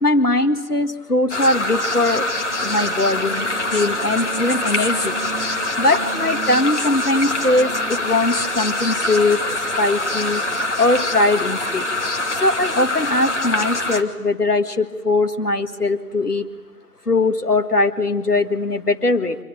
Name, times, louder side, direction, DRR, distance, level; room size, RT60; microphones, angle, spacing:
voice 1, 0.0-2.3 2.6-5.2 5.8-10.5 10.8-11.9 12.4-16.5 17.1-19.4, left 2 dB, 85° left, 7 dB, 2.0 m, -20 dB
sound 1, 1.3-14.0, left 2 dB, 50° left, 2.4 m, -24 dB
sound 2, 2.0-10.5, right 3 dB, 30° right, 3.5 m, -37 dB
26.5 x 21.0 x 9.1 m, 1.2 s
figure-of-eight pair, 165°, 45 cm